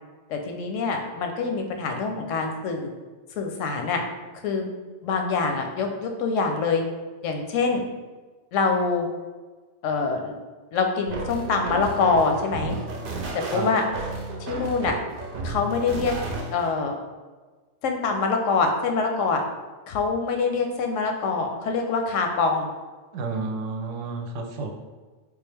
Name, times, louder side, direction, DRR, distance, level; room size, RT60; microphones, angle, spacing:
voice 1, 0.3-2.9 3.4-4.0 4.4-4.7 5.0-6.8 7.2-7.8 8.5-9.1 9.8-10.3 10.7-12.7 13.3-13.8 14.5-15.0 15.4-16.1 16.5-17.0 17.8-19.4 19.9-22.7, left 4 dB, 90° left, 4 dB, 0.9 m, -25 dB
sound 1, 11.1-16.7, right 2 dB, 55° right, 0.7 m, -33 dB
voice 2, 23.1-24.7, right 4 dB, 90° right, 3 dB, 0.9 m, -30 dB
3.7 x 2.4 x 3.3 m, 1.3 s
omnidirectional pair, 1.3 m